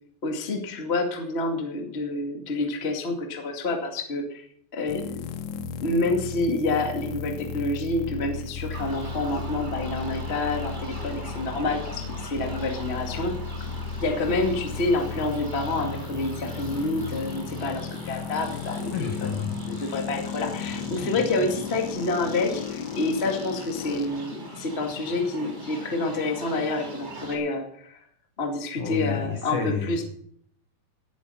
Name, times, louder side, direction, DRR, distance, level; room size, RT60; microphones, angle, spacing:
voice 1, 0.2-4.4 4.7-5.0 5.8-13.3 14.0-19.3 19.7-28.0 28.4-30.0, left 2 dB, 35° left, 3 dB, 0.9 m, -28 dB
sound 1, 4.9-24.1, left 6 dB, 85° left, 3.6 m, -35 dB
sound 2, 8.7-27.4, right 1 dB, 15° right, 1.9 m, -41 dB
voice 2, 18.9-19.9 28.8-30.0, left 5 dB, 60° left, 4 dB, 2.2 m, -31 dB
17.0 x 9.4 x 5.6 m, 0.68 s
omnidirectional pair, 5.3 m